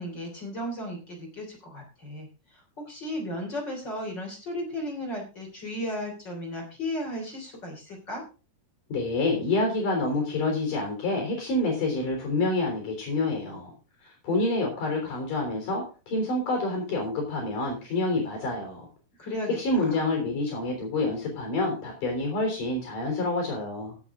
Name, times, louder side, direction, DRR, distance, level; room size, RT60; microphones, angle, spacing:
voice 1, 0.0-2.3 2.8-8.2 19.2-20.0, left 1 dB, 30° left, 0 dB, 3.5 m, -35 dB
voice 2, 8.9-13.7 14.2-18.9 19.6-24.0, left 2 dB, 55° left, 2 dB, 4.9 m, -27 dB
17.0 x 7.2 x 3.7 m, 0.34 s
omnidirectional pair, 4.7 m